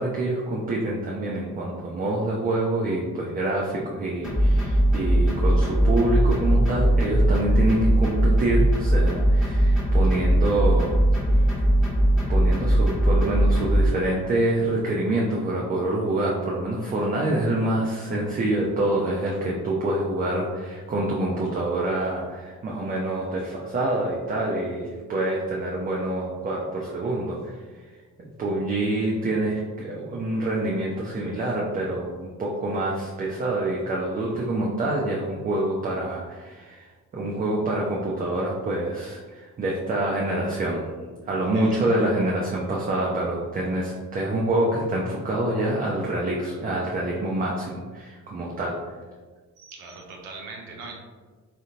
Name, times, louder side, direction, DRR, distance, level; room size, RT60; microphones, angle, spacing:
voice 1, 0.0-11.0 11.3-11.4 12.3-27.6 28.2-48.7, right 1 dB, 20° right, -3 dB, 0.4 m, -26 dB
sound 1, 4.2-13.9, right 1 dB, ahead, 1.1 m, -20 dB
voice 2, 49.6-50.9, right 4 dB, 70° right, 1 dB, 0.7 m, -40 dB
3.7 x 2.1 x 2.6 m, 1.4 s
figure-of-eight pair, 40°, 45 cm